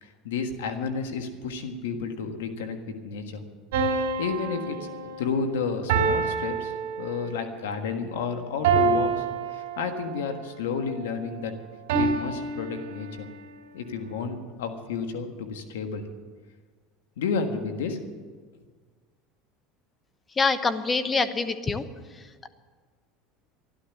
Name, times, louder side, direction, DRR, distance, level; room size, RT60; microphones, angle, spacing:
voice 1, 0.0-3.4 4.2-4.9 5.2-6.7 7.0-9.2 9.5-11.6 11.9-13.3 13.7-16.1 17.2-18.1, left 5 dB, 85° left, 6 dB, 1.5 m, -31 dB
sound 1, 3.7-7.5 8.6-10.2 11.9-13.4, right 5 dB, 80° right, 2.8 m, -27 dB
voice 2, 20.4-21.8, left 4 dB, 25° left, 11 dB, 1.0 m, -25 dB
13.0 x 11.5 x 7.2 m, 1.5 s
hypercardioid pair, 90°, 0 cm